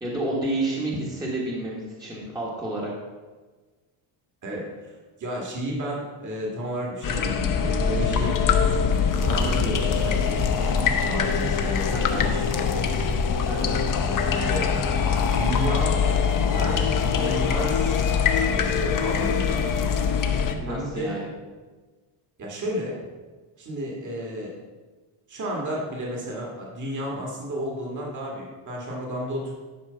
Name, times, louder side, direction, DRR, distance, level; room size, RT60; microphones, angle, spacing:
voice 1, 0.0-2.9 11.9-12.2 13.5-13.8 20.6-21.3, right 1 dB, 10° right, -5 dB, 1.4 m, -30 dB
voice 2, 4.4-4.9 5.2-8.3 9.2-13.1 14.0-14.7 15.3-16.1 16.4-18.0 18.2-19.7 20.7-21.3 22.4-23.0 23.6-24.6 25.3-29.5, right 1 dB, 35° right, -2 dB, 1.9 m, -32 dB
sound 1, 7.0-20.5, left 6 dB, 40° left, 0.8 m, -23 dB
11.0 x 4.6 x 5.6 m, 1.3 s
cardioid pair, 145°, 50 cm